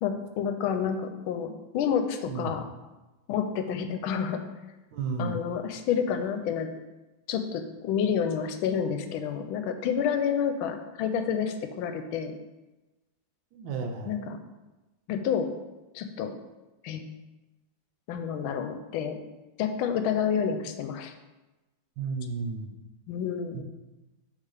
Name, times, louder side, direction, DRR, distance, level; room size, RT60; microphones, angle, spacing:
voice 1, 0.0-2.6 3.3-4.4 5.2-6.7 7.3-12.3 14.1-14.4 15.1-15.5 15.9-16.3 16.8-17.0 18.1-19.2 19.6-21.1 23.1-23.6, left 7 dB, 85° left, 7 dB, 1.4 m, -29 dB
voice 2, 2.3-2.6 4.9-5.4 13.5-14.2 22.0-22.7 23.5-23.6, right 4 dB, 75° right, 4 dB, 1.5 m, -33 dB
6.5 x 3.4 x 4.8 m, 1.1 s
omnidirectional pair, 2.2 m